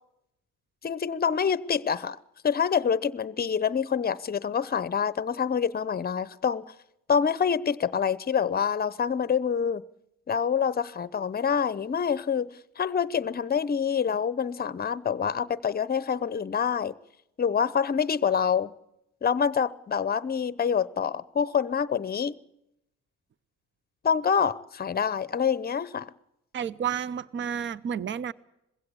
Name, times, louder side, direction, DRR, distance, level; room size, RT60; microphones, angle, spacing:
voice 1, 0.8-2.2 2.4-6.6 7.1-9.8 10.3-12.5 12.8-16.9 17.4-18.7 19.2-22.4 24.0-26.1, left 7 dB, 30° left, 19 dB, 0.8 m, -26 dB
voice 2, 26.5-28.3, right 8 dB, 40° right, 20 dB, 0.7 m, -31 dB
21.0 x 16.0 x 8.5 m, 0.85 s
cardioid pair, 90°, 30 cm